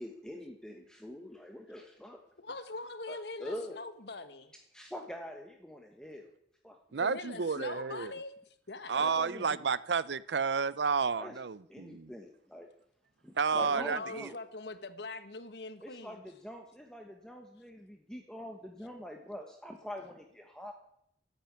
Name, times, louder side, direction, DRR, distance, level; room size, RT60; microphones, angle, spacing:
voice 1, 0.0-2.2 3.1-3.8 4.7-6.3 6.6-7.0 8.9-9.6 11.2-11.4 11.7-12.7 13.2-14.4 15.8-20.7, left 1 dB, 5° left, 1.3 m, -45 dB
voice 2, 2.4-4.5 7.0-8.3 8.7-9.6 13.6-16.2, left 3 dB, 65° left, 1.3 m, -42 dB
voice 3, 6.9-8.1 8.9-12.1 13.4-14.3, right 5 dB, 70° right, 0.6 m, -31 dB
14.5 x 8.9 x 9.4 m
head